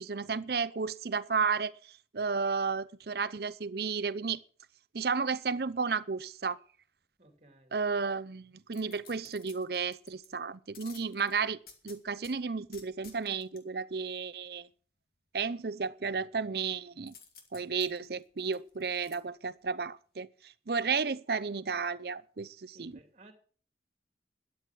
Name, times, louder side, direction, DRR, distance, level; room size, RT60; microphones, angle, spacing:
voice 1, 0.0-4.4 4.9-6.6 7.7-11.6 11.8-14.7 15.3-17.1 17.5-22.9, right 5 dB, 60° right, 0.6 m, -33 dB
voice 2, 7.2-7.7 22.7-23.3, right 1 dB, 35° right, 2.8 m, -57 dB
sound 1, 8.7-10.3 10.7-12.3 12.7-13.6 17.1-19.2 19.6-19.7, left 6 dB, 55° left, 2.3 m, -54 dB
13.0 x 9.4 x 6.0 m
head